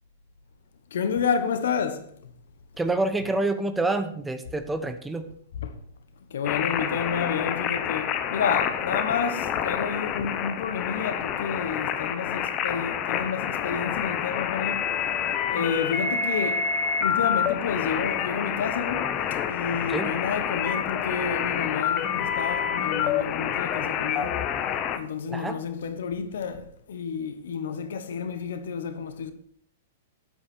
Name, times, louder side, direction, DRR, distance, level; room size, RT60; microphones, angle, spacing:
voice 1, 0.9-2.3 5.5-5.7 6.3-15.0 15.5-16.7 17.0-24.5 24.9-29.3, left 6 dB, 70° left, 1.2 m, -30 dB
voice 2, 2.8-5.3 19.9-20.1 25.3-25.6, right 2 dB, 10° right, 0.9 m, -27 dB
sound 1, 6.4-25.0, left 8 dB, 35° left, 1.0 m, -28 dB
8.8 x 8.5 x 4.5 m
hypercardioid pair, 115°, 0 cm